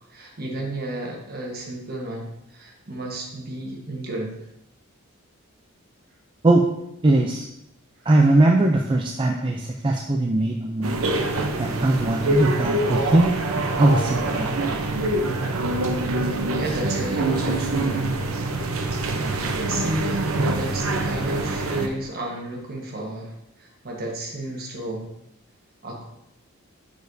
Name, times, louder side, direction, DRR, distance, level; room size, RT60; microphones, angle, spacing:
voice 1, 0.1-4.4 8.0-8.1 16.5-18.3 18.9-25.1 25.8-26.0, right 2 dB, 45° right, -1 dB, 1.4 m, -32 dB
voice 2, 7.0-7.5 8.1-11.1 11.6-13.3 13.8-14.6, right 2 dB, 25° right, 1 dB, 0.4 m, -20 dB
sound 1, 10.8-21.9, right 2 dB, 80° right, 0.8 m, -25 dB
7.0 x 6.4 x 2.7 m, 0.81 s
head